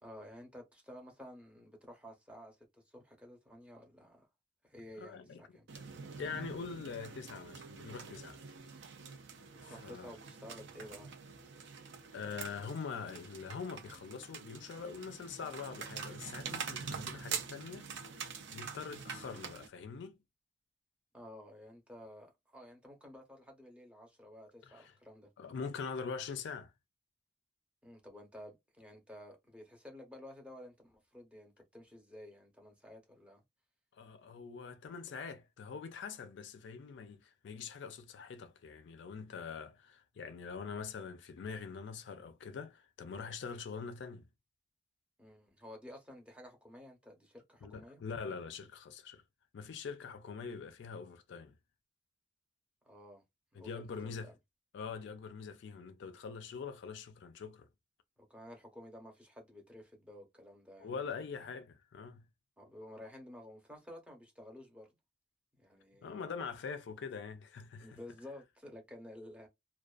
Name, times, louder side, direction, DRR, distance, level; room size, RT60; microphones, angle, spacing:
voice 1, 0.0-4.3 4.6-5.7 9.7-11.1 21.1-25.3 27.8-33.4 45.2-48.0 52.8-53.2 53.5-54.3 58.2-61.0 62.6-64.9 65.6-66.2 67.8-69.5, left 1 dB, 5° right, 0.7 m, -52 dB
voice 2, 5.0-5.6 6.2-8.4 9.6-10.1 12.1-18.1 18.5-20.2 24.6-24.9 25.4-26.7 34.0-44.3 47.6-49.2 49.5-51.5 53.6-54.3 54.7-57.7 60.8-62.3 66.0-68.0, left 5 dB, 65° left, 0.4 m, -44 dB
sound 1, 5.7-19.7, right 6 dB, 65° right, 0.5 m, -45 dB
2.4 x 2.2 x 2.3 m
head